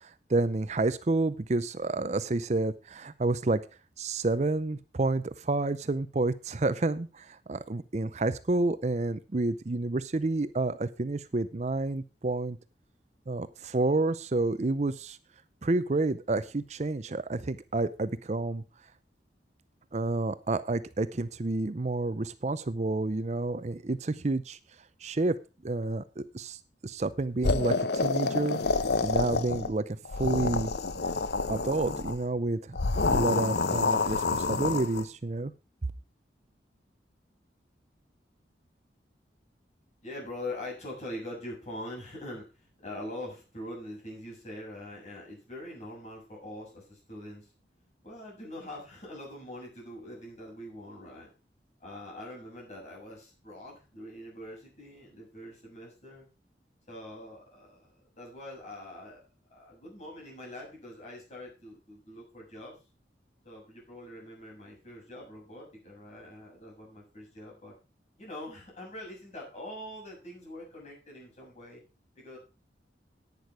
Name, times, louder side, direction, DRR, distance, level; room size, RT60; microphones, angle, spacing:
voice 1, 0.0-3.6 4.0-12.6 13.3-15.2 15.6-18.6 19.9-24.6 25.0-25.4 25.6-28.6 29.0-30.7 31.5-32.8 33.1-35.5, right 2 dB, 40° right, 14 dB, 0.5 m, -29 dB
sound 1, 27.4-29.7 30.0-32.2 32.7-35.0, left 3 dB, 65° left, 0.8 m, -28 dB
voice 2, 40.0-47.5 48.0-51.3 51.8-56.3 56.9-57.9 58.2-59.2 59.5-62.8 63.4-67.7 68.2-71.8 72.2-72.4, left 1 dB, 40° left, -2 dB, 7.5 m, -43 dB
11.0 x 9.7 x 4.7 m, 0.32 s
head